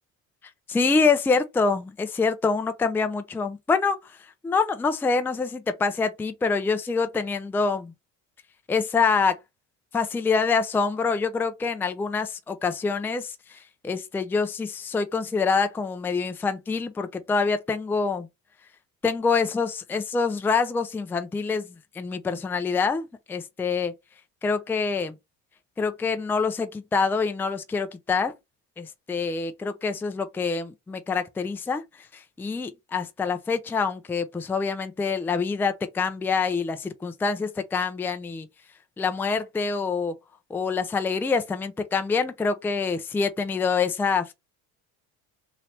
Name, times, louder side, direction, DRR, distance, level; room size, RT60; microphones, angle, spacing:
voice 1, 0.7-4.2 4.4-7.9 8.7-9.3 9.9-13.6 13.8-18.3 19.0-23.9 24.4-25.1 25.8-28.3 28.8-31.8 32.1-38.5 39.0-40.2 40.5-44.3, left 4 dB, 5° left, 0.4 m, -26 dB
2.9 x 2.8 x 3.2 m
hypercardioid pair, 75°, 45 cm